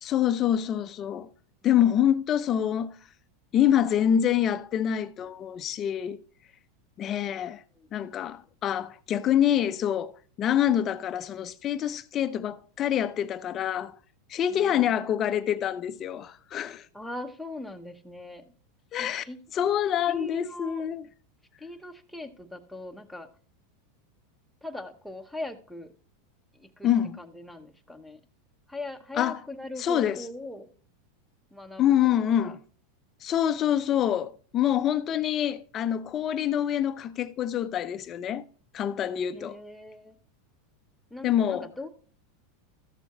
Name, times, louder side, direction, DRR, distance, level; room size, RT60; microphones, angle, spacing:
voice 1, 0.0-1.3 1.6-3.0 3.5-6.2 7.0-7.6 7.9-10.1 10.4-13.9 14.3-16.9 18.9-19.2 19.5-21.0 26.8-27.2 29.2-29.4 29.8-30.2 31.8-32.6 33.2-38.4 38.7-39.5 41.2-41.7, left 10 dB, 30° left, 0.6 m, -26 dB
voice 2, 14.5-14.9 16.9-18.4 19.0-19.4 20.1-20.8 21.6-23.3 24.6-25.9 26.5-26.9 27.2-28.2 28.7-30.7 31.5-32.6 39.3-40.1 41.1-41.9, left 1 dB, ahead, 0.9 m, -40 dB
13.5 x 7.0 x 3.0 m
supercardioid pair, 140°, 0 cm